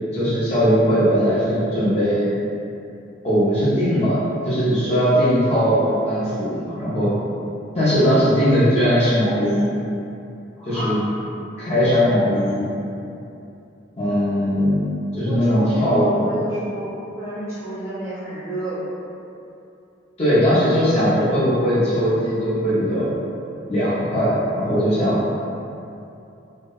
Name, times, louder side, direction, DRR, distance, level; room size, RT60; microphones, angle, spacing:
voice 1, 0.1-2.3 3.2-4.2 4.4-7.1 7.8-9.7 10.7-11.0 11.6-12.7 14.0-14.8 15.2-16.3 20.2-23.1 23.7-25.2, equal, 30° left, -11 dB, 0.5 m, -19 dB
voice 2, 10.6-10.9 15.1-16.9 17.2-18.8, right 1 dB, 15° right, -13 dB, 0.7 m, -31 dB
2.7 x 2.0 x 2.3 m, 2.7 s
head